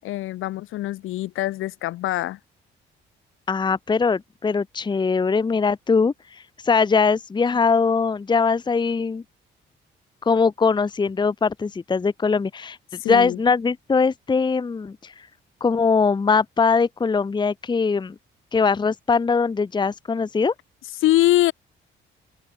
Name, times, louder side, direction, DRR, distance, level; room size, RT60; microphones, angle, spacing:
voice 1, 0.0-2.4 13.0-13.4 21.0-21.5, left 15 dB, 90° left, 7.5 m, -23 dB
voice 2, 3.5-9.2 10.2-12.8 13.1-15.1 15.6-18.1 18.5-20.5, left 5 dB, 20° left, 0.7 m, -21 dB
open air
cardioid pair, 90°, 20 cm